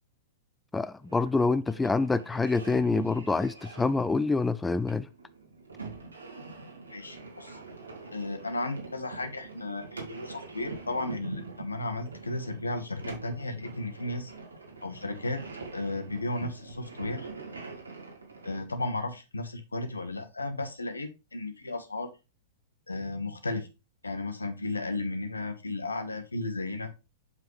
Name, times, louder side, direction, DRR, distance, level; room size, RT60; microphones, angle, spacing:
voice 1, 0.7-5.1, left 3 dB, 10° left, 0.4 m, -26 dB
sound 1, 1.0-18.6, right 3 dB, 90° right, 2.3 m, -44 dB
voice 2, 6.9-7.6 8.1-14.3 14.8-15.4 15.7-17.3 18.4-22.1 22.9-23.7 24.0-26.9, left 2 dB, 90° left, 1.2 m, -34 dB
7.6 x 5.5 x 3.2 m
figure-of-eight pair, 110°, 0 cm